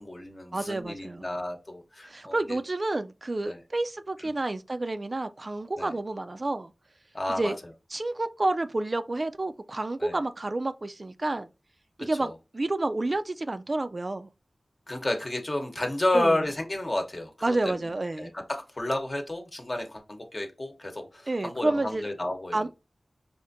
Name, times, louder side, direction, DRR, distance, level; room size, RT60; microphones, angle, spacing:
voice 1, 0.0-2.6 3.5-3.6 4.2-4.3 5.8-5.9 7.1-7.5 10.0-10.2 12.2-12.3 14.9-17.9 18.2-22.6, left 1 dB, 40° left, 0.9 m, -31 dB
voice 2, 0.5-1.3 2.1-6.7 7.4-7.6 7.9-11.5 12.0-14.3 16.1-16.4 17.4-18.3 21.3-22.1 22.5-22.7, right 2 dB, 50° right, 0.3 m, -29 dB
4.9 x 2.5 x 2.6 m
cardioid pair, 45°, 0 cm